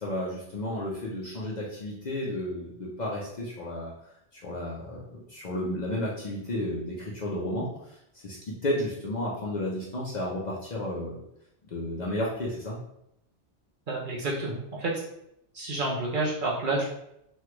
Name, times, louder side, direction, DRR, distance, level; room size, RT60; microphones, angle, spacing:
voice 1, 0.0-3.9 4.3-8.0 8.2-11.2 11.7-12.8, left 1 dB, 50° left, -5 dB, 0.6 m, -32 dB
voice 2, 13.9-15.0 15.5-16.9, right 2 dB, 50° right, -4 dB, 0.8 m, -29 dB
3.2 x 2.3 x 2.9 m, 0.78 s
omnidirectional pair, 1.2 m